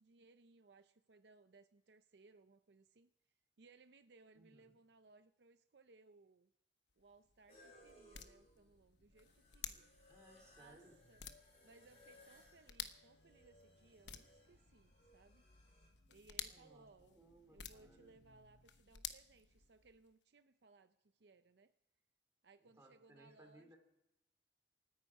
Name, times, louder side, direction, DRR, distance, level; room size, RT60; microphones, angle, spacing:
voice 1, 0.0-6.5 7.0-9.9 10.6-11.2 11.6-15.5 16.1-21.7 22.4-23.7, right 3 dB, 65° right, 10 dB, 0.6 m, -66 dB
voice 2, 4.3-4.7 10.1-11.0 16.5-18.2 22.6-23.8, right 1 dB, 15° right, 2 dB, 3.3 m, -64 dB
sound 1, 6.9-20.1, left 9 dB, 80° left, 1.0 m, -54 dB
sound 2, 7.5-15.9, left 1 dB, 35° left, 6.8 m, -66 dB
28.0 x 9.6 x 4.8 m, 0.86 s
head